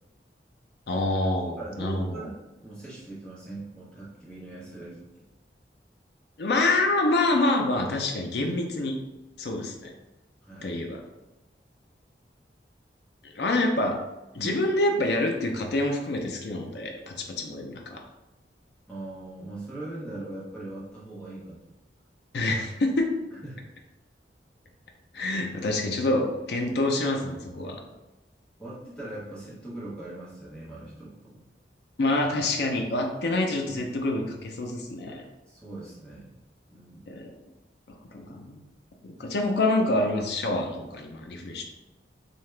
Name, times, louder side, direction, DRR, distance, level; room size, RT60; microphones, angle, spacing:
voice 1, 0.9-2.2 6.4-9.0 9.4-9.9 10.6-11.0 13.2-14.0 14.3-18.0 22.3-23.1 25.1-27.8 32.0-35.3 37.1-37.3 38.1-38.6 39.0-41.6, left 2 dB, 65° left, 2 dB, 0.5 m, -27 dB
voice 2, 1.6-5.0 10.4-10.7 14.3-14.6 18.9-21.6 23.3-23.6 28.6-31.4 35.5-36.3 36.7-37.1, right 2 dB, 5° left, -8 dB, 0.9 m, -40 dB
2.8 x 2.3 x 3.2 m, 1.0 s
head